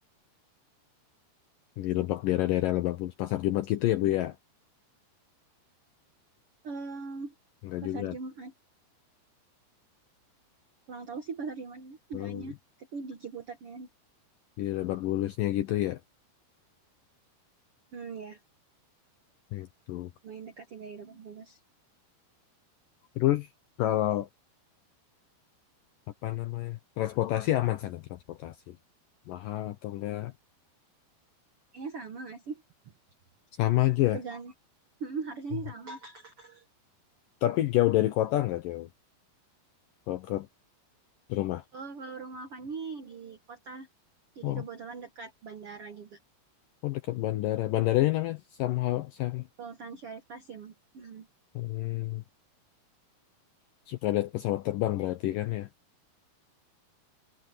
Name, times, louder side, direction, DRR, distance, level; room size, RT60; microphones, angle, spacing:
voice 1, 1.8-4.4 7.6-8.2 12.1-12.5 14.6-16.0 19.5-20.1 23.2-23.5 23.8-24.3 26.2-28.8 29.3-30.3 33.6-34.2 37.4-38.9 40.1-40.5 41.3-41.6 44.4-44.6 46.8-49.5 51.6-52.2 53.9-55.7, left 15 dB, 80° left, 2.0 m, -28 dB
voice 2, 6.6-7.3 7.8-8.5 10.9-13.9 17.9-18.4 20.2-21.6 31.7-32.6 34.1-34.5 35.0-36.6 41.7-43.9 44.3-46.2 49.6-51.3, right 4 dB, 65° right, 1.4 m, -41 dB
omnidirectional pair, 4.8 m